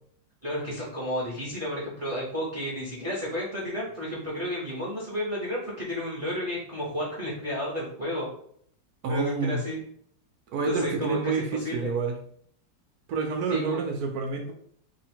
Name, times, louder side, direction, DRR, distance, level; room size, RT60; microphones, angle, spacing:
voice 1, 0.4-8.3 9.1-9.8 10.6-11.9 13.5-13.8, equal, 35° right, -6 dB, 0.5 m, -32 dB
voice 2, 9.0-9.6 10.5-12.2 13.1-14.5, right 4 dB, 75° right, 3 dB, 0.9 m, -28 dB
2.8 x 2.8 x 4.3 m, 0.64 s
omnidirectional pair, 2.0 m